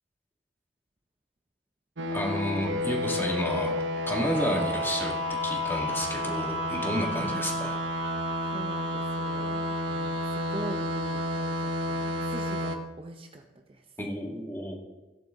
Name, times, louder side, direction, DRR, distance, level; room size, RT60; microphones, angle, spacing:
sound 1, 2.0-12.8, left 1 dB, 85° right, 1.2 m, -30 dB
voice 1, 2.1-3.7 4.1-5.1 5.4-7.8 14.0-14.8, left 1 dB, 10° left, -1 dB, 2.5 m, -31 dB
voice 2, 8.5-13.9, right 2 dB, 30° right, 4 dB, 0.8 m, -42 dB
16.5 x 10.5 x 3.9 m, 1.1 s
head